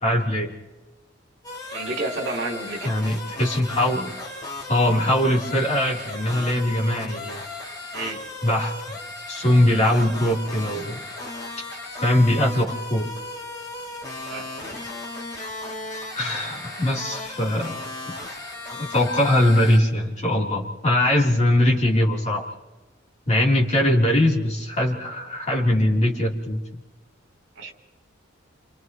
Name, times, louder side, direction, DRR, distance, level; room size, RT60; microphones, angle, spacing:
voice 1, 0.0-0.5 2.8-4.1 4.7-7.4 8.4-8.7 9.3-11.0 12.0-13.1 16.1-17.8 18.1-18.2 18.7-22.5 23.3-26.8, left 1 dB, 35° left, -3 dB, 3.6 m, -21 dB
sound 1, 1.4-19.8, left 2 dB, 20° left, 3.6 m, -36 dB
voice 2, 1.7-2.9 7.9-8.2 14.3-14.5 27.6-27.7, right 2 dB, 60° right, 1 dB, 3.5 m, -30 dB
29.0 x 28.5 x 3.1 m, 1.2 s
head